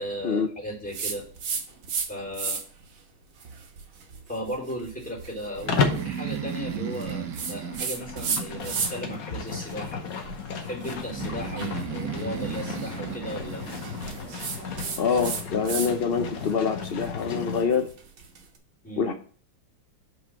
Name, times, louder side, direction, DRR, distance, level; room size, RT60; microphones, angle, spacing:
voice 1, 0.0-1.5 2.0-2.6 4.3-10.0 10.6-13.7 18.8-19.1, equal, 5° left, -4 dB, 3.3 m, -36 dB
sound 1, 0.9-2.1 2.3-2.8 3.4-9.1 9.5-15.9 16.2-18.4, right 5 dB, 85° right, 2.0 m, -35 dB
Breathing, 5.5-9.2 11.1-14.2, right 8 dB, 60° right, 1.6 m, -35 dB
Livestock farm animals working animals, 5.7-6.1 7.9-17.7, left 5 dB, 55° left, 1.3 m, -33 dB
voice 2, 15.0-17.9 19.0-19.1, left 5 dB, 85° left, 5 dB, 0.5 m, -25 dB
5.6 x 5.0 x 6.2 m, 0.42 s
omnidirectional pair, 2.1 m